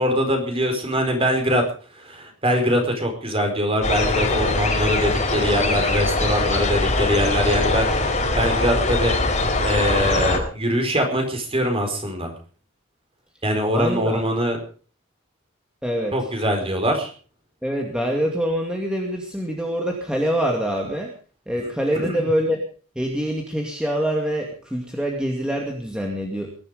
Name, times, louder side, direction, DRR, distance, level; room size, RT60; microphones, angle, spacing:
voice 1, 0.0-1.6 1.9-9.1 9.6-12.3 13.4-14.6 16.1-17.1 21.6-22.3, equal, 25° right, 4 dB, 4.8 m, -23 dB
sound 1, 3.8-10.4, left 2 dB, 35° left, 3.8 m, -22 dB
voice 2, 13.7-14.2 15.8-16.1 17.6-21.1 21.5-22.6 23.0-26.5, equal, 5° right, 0 dB, 2.4 m, -25 dB
21.5 x 12.0 x 5.2 m, 0.41 s
head